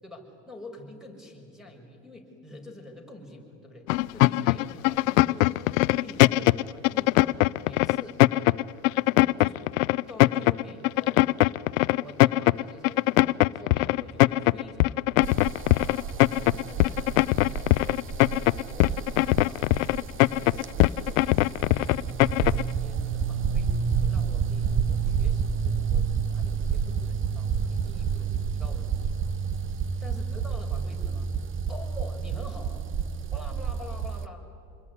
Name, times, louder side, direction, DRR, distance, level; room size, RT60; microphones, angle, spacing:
voice 1, 0.0-8.2 9.4-9.6 10.1-11.2 11.9-15.2 15.7-18.0 18.6-20.7 21.0-28.3 28.5-29.2 30.0-31.3 31.7-32.9 33.3-34.5, left 1 dB, ahead, 4 dB, 6.2 m, -46 dB
sound 1, 3.9-22.7, left 20 dB, 80° left, 0.6 m, -21 dB
sound 2, 15.2-34.3, right 7 dB, 30° right, 1.1 m, -30 dB
27.5 x 22.0 x 9.8 m, 2.8 s
supercardioid pair, 100°, 39 cm